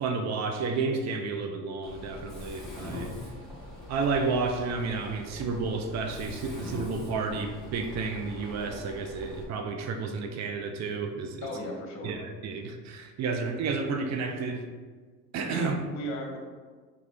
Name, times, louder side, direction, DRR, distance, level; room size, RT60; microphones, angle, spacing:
voice 1, 0.0-3.1 3.9-11.5 12.0-14.6 15.3-15.7, right 4 dB, 45° right, 6 dB, 0.5 m, -31 dB
Mechanisms, 1.8-9.4, left 1 dB, ahead, 1.0 m, -42 dB
voice 2, 11.4-12.1 15.4-16.4, left 1 dB, 50° left, 1 dB, 0.8 m, -36 dB
3.4 x 2.4 x 3.5 m, 1.5 s
supercardioid pair, 95°, 37 cm